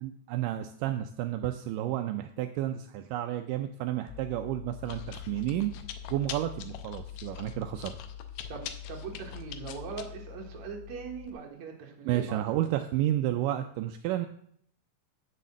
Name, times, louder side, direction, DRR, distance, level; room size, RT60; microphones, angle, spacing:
voice 1, 0.0-5.7 6.1-8.0 12.1-14.3, right 13 dB, 85° right, 7 dB, 2.1 m, -31 dB
Chewing mastication, 4.1-11.3, left 9 dB, 85° left, 2.4 m, -42 dB
voice 2, 8.5-12.4, right 5 dB, 65° right, 1 dB, 2.7 m, -41 dB
6.7 x 6.5 x 7.3 m, 0.66 s
omnidirectional pair, 3.8 m